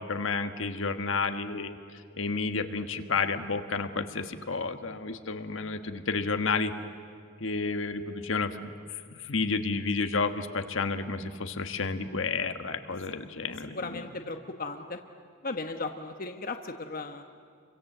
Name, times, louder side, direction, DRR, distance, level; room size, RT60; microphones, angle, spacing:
voice 1, 0.0-6.7 7.4-8.6 8.9-14.0, left 4 dB, 70° left, 8 dB, 1.4 m, -31 dB
voice 2, 13.7-15.0 15.4-17.2, left 3 dB, 45° left, 5 dB, 1.1 m, -36 dB
30.0 x 24.5 x 7.9 m, 2.2 s
head